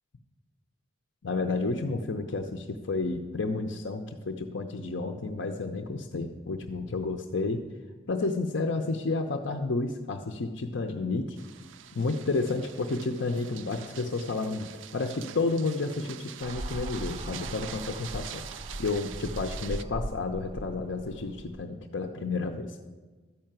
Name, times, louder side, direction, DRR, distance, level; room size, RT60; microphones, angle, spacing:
voice 1, 1.2-7.6 8.1-11.4 11.9-22.8, left 3 dB, 90° left, 3 dB, 0.7 m, -31 dB
sound 1, 11.4-19.8, right 10 dB, 90° right, 0.4 m, -45 dB
sound 2, 16.4-21.6, right 1 dB, 30° right, 0.4 m, -39 dB
13.0 x 5.7 x 8.9 m, 1.4 s
head